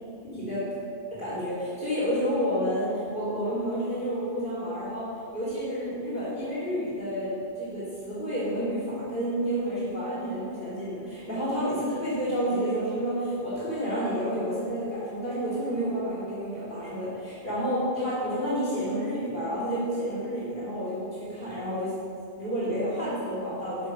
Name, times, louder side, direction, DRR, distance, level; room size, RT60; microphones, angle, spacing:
voice 1, 0.2-0.6 1.1-21.9 22.4-23.9, equal, 55° left, -10 dB, 3.2 m, -30 dB
11.0 x 6.4 x 5.6 m, 2.5 s
omnidirectional pair, 1.0 m